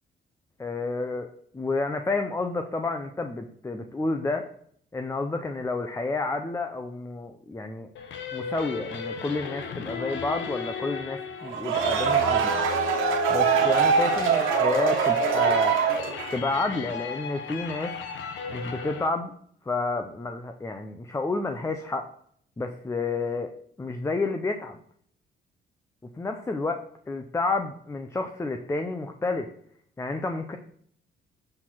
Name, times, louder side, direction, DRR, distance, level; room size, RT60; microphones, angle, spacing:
voice 1, 0.6-1.3 1.5-4.5 4.9-7.9 8.3-12.5 13.3-15.8 16.3-17.9 18.5-19.3 19.7-22.1 22.6-23.5 23.8-24.8 26.1-29.5 30.0-30.6, left 3 dB, 15° left, 6 dB, 0.6 m, -30 dB
sound 1, 8.0-19.1, left 6 dB, 70° left, 1.0 m, -35 dB
sound 2, 11.5-16.5, right 6 dB, 90° right, 1.3 m, -23 dB
7.6 x 4.3 x 4.5 m, 0.63 s
cardioid pair, 90°, 20 cm